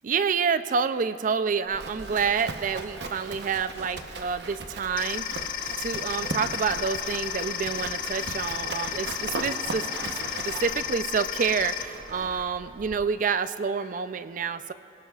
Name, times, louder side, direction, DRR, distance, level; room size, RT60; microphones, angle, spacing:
voice 1, 0.0-5.3 5.8-9.9 10.4-14.7, right 6 dB, 50° right, 12 dB, 0.4 m, -28 dB
Livestock farm animals working animals, 1.7-12.5, right 3 dB, 75° right, 0.9 m, -38 dB
sound 1, 5.0-11.8, left 10 dB, 50° left, 0.6 m, -33 dB
sound 2, 8.3-13.3, equal, 5° right, 0.6 m, -49 dB
25.5 x 17.5 x 2.4 m, 2.9 s
head